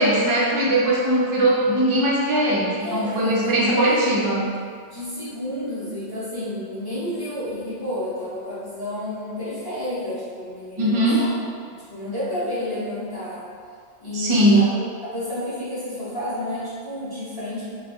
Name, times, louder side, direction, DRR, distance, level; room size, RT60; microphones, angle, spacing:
voice 1, 0.0-4.5 10.8-11.2 14.1-14.7, right 1 dB, 50° right, -5 dB, 0.3 m, -20 dB
voice 2, 2.8-4.5 4.9-11.3 11.9-13.4 14.0-17.7, left 1 dB, 20° left, -12 dB, 0.8 m, -30 dB
2.6 x 2.3 x 3.4 m, 2.1 s
omnidirectional pair, 1.3 m